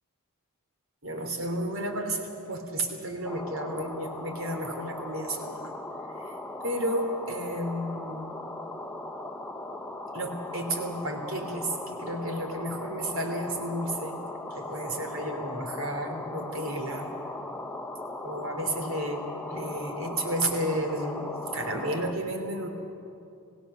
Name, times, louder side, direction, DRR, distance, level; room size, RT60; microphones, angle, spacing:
voice 1, 1.0-5.7 6.1-6.3 6.6-8.3 10.1-14.2 14.5-17.2 18.2-19.2 19.5-21.2 21.5-22.7, right 1 dB, 70° right, 4 dB, 3.1 m, -32 dB
sound 1, 3.2-22.1, left 2 dB, 5° left, 0.9 m, -38 dB
26.5 x 17.5 x 6.8 m, 2.7 s
head